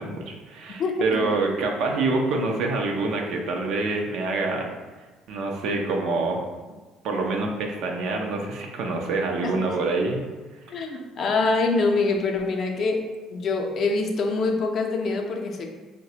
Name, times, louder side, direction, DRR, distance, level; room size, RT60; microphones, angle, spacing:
voice 1, 0.0-4.7 5.3-6.4 7.0-10.2 10.8-10.9, right 3 dB, 70° right, 1 dB, 0.5 m, -26 dB
voice 2, 0.8-1.3 9.4-9.5 10.7-15.7, left 3 dB, 50° left, 2 dB, 0.5 m, -25 dB
3.9 x 2.1 x 2.8 m, 1.3 s
supercardioid pair, 80°, 0 cm